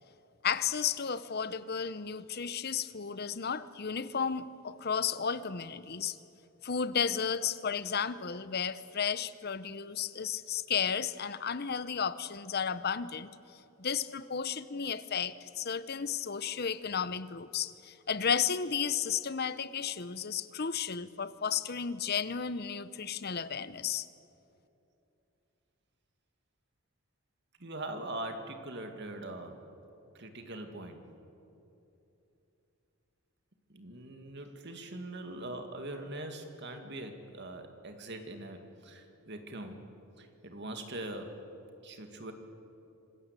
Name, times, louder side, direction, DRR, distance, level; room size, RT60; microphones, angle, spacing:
voice 1, 0.4-6.2 6.6-13.3 13.8-24.1, left 7 dB, 45° left, 0.8 m, -33 dB
voice 2, 27.6-29.7 30.1-31.0 33.7-39.9 40.2-41.4 41.8-42.3, right 1 dB, 50° right, 2.3 m, -42 dB
26.5 x 20.0 x 8.3 m
head